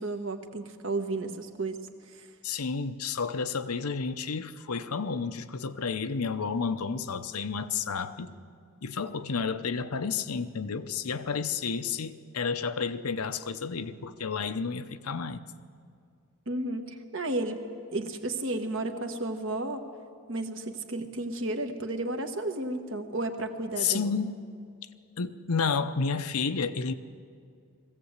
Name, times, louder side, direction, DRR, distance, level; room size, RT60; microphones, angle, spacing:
voice 1, 0.0-1.8 2.1-2.3 16.5-17.6 17.9-19.8 20.3-24.2, right 2 dB, 60° right, 6 dB, 1.4 m, -33 dB
voice 2, 2.4-8.3 8.8-15.4 23.8-24.4 25.2-26.9, left 5 dB, 90° left, 10 dB, 0.8 m, -31 dB
20.5 x 15.5 x 8.1 m, 2.3 s
head